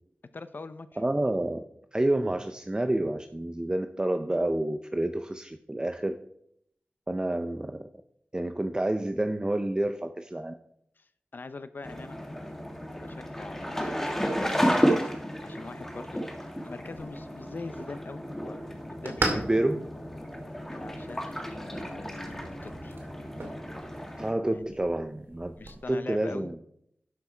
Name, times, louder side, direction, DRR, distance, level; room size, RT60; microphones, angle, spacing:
voice 1, 0.3-0.9 11.0-12.2 13.0-14.0 14.4-14.6 15.4-16.2 16.6-18.6 18.9-19.5 20.7-23.0 24.5-24.8 25.6-26.5, left 3 dB, 60° left, 12 dB, 0.7 m, -42 dB
voice 2, 1.0-1.6 1.9-6.1 7.1-7.8 8.3-10.5 19.3-19.8 24.2-25.6 25.9-26.6, right 1 dB, 20° right, 8 dB, 0.6 m, -29 dB
sound 1, 11.8-24.3, equal, 10° left, 1.7 m, -32 dB
sound 2, 16.9-25.8, right 2 dB, 80° right, 2.3 m, -39 dB
11.5 x 6.1 x 4.5 m, 0.72 s
wide cardioid pair, 60°, 4 cm